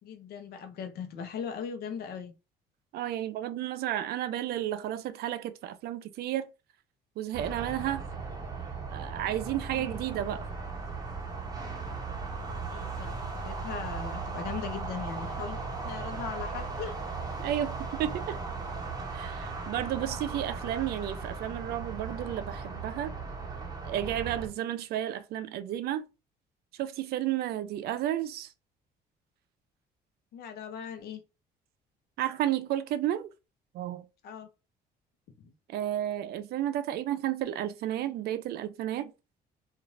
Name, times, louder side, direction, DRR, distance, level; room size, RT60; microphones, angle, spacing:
voice 1, 0.0-2.3 9.7-10.0 12.6-15.6 15.8-16.9 30.3-31.2 34.2-34.5 35.4-35.5, left 7 dB, 70° left, 0.7 m, -39 dB
voice 2, 2.9-6.5 7.2-8.0 8.9-10.5 17.4-18.4 19.1-23.1 23.9-26.1 26.8-28.5 32.2-33.3 33.7-34.1 35.7-39.1, right 12 dB, 70° right, 0.5 m, -32 dB
sound 1, 7.3-24.5, right 4 dB, 20° right, 1.0 m, -37 dB
2.5 x 2.4 x 3.1 m
cardioid pair, 110°, 17 cm